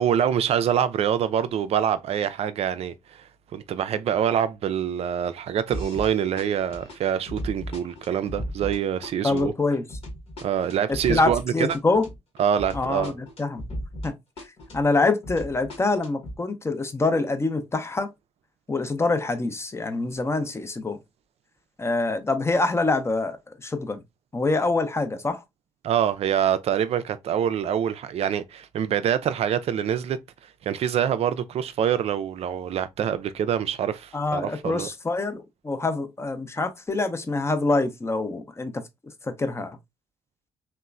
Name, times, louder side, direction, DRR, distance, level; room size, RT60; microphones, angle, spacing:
voice 1, 0.0-3.2 3.5-9.5 10.4-11.7 12.4-13.1 25.8-30.2 30.6-34.9, right 9 dB, 50° right, 0.4 m, -25 dB
sound 1, 5.7-6.1 6.4-14.1 14.4-16.4, equal, 45° left, 1.0 m, -36 dB
voice 2, 9.2-9.9 11.1-12.1 12.7-13.6 14.0-14.1 14.7-18.1 18.7-21.0 21.8-24.0 24.3-25.4 34.1-38.8 39.2-39.8, left 3 dB, 20° left, 0.6 m, -25 dB
2.9 x 2.1 x 2.3 m
hypercardioid pair, 50°, 14 cm